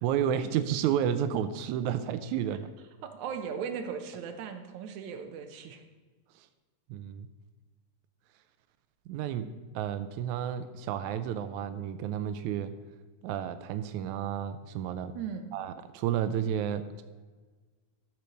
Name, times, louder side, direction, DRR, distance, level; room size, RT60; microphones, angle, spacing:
voice 1, 0.0-2.7 6.4-6.5 6.9-7.3 9.1-9.5 9.8-12.7 13.2-15.1 15.5-17.0, right 9 dB, 85° right, 10 dB, 1.7 m, -31 dB
voice 2, 3.0-5.8 15.1-15.5, right 7 dB, 70° right, 6 dB, 2.1 m, -37 dB
13.5 x 4.5 x 6.3 m, 1.3 s
omnidirectional pair, 4.0 m